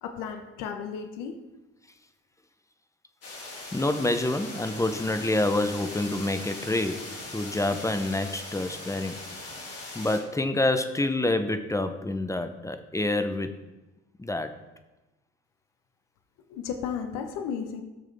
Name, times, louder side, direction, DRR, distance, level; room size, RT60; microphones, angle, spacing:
voice 1, 0.0-1.4 16.5-17.8, left 7 dB, 60° left, 7 dB, 1.2 m, -34 dB
sound 1, 3.2-10.2, left 2 dB, 40° left, 2.8 m, -40 dB
voice 2, 3.7-9.2 9.9-13.5 14.2-14.6, left 2 dB, 10° left, 9 dB, 0.8 m, -27 dB
16.0 x 6.5 x 3.6 m, 1.1 s
hypercardioid pair, 60°, 36 cm